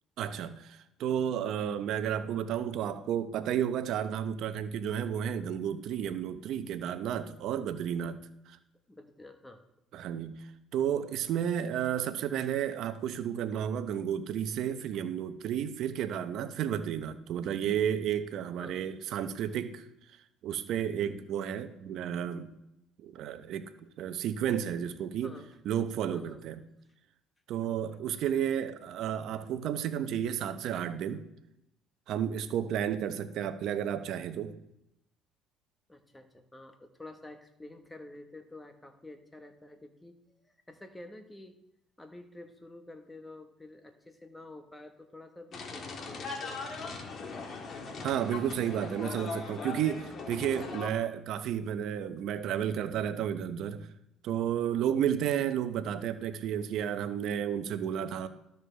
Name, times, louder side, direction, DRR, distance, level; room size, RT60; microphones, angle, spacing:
voice 1, 0.2-8.2 8.5-8.6 9.9-10.5 10.7-19.9 20.4-22.5 23.0-23.7 24.0-25.3 25.6-26.6 27.5-31.2 32.1-34.5 48.0-53.9 54.2-58.3, right 9 dB, 65° right, 11 dB, 0.8 m, -32 dB
voice 2, 8.9-9.6 18.6-18.8 19.3-19.5 25.2-25.5 26.1-26.4 28.3-28.5 32.6-33.0 35.9-41.6 42.0-46.6 50.0-50.3, left 2 dB, 15° left, 7 dB, 1.3 m, -50 dB
sound 1, 45.5-50.9, left 4 dB, 50° left, 1.6 m, -39 dB
13.0 x 6.7 x 3.4 m, 0.86 s
supercardioid pair, 85°, 0 cm